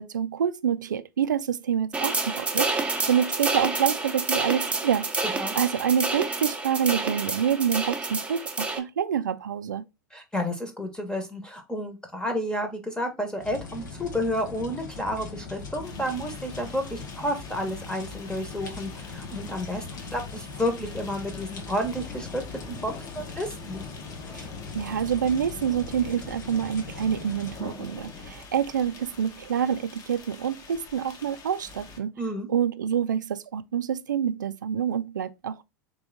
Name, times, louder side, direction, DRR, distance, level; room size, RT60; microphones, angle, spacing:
voice 1, 0.0-5.1 5.5-9.8 24.3-24.5 24.7-32.1 32.5-35.6, right 8 dB, 90° right, 0.4 m, -27 dB
sound 1, 1.9-8.8, right 3 dB, 15° right, 0.9 m, -29 dB
voice 2, 10.1-19.8 20.1-23.8 32.2-32.5, equal, 10° left, 1.2 m, -31 dB
sound 2, 13.4-27.6, left 4 dB, 85° left, 1.3 m, -40 dB
sound 3, 15.8-32.0, left 4 dB, 35° left, 1.1 m, -45 dB
3.6 x 3.4 x 3.9 m
hypercardioid pair, 90°, 10 cm